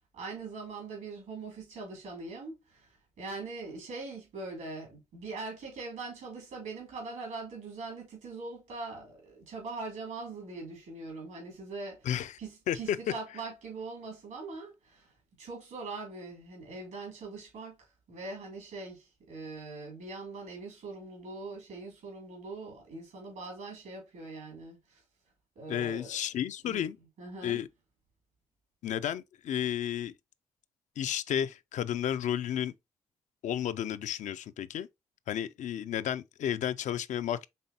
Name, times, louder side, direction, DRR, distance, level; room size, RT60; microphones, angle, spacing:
voice 1, 0.1-2.9 3.2-12.1 12.4-15.1 15.4-17.8 18.1-25.0 25.5-26.1 26.6-26.8 27.2-27.6, right 3 dB, 85° right, 2.9 m, -42 dB
voice 2, 12.0-12.4 12.7-13.0 25.7-27.0 27.4-27.7 28.8-30.1 31.0-32.7 33.4-34.9 35.3-37.5, left 10 dB, 75° left, 0.4 m, -32 dB
5.5 x 3.4 x 2.7 m
supercardioid pair, 45°, 13 cm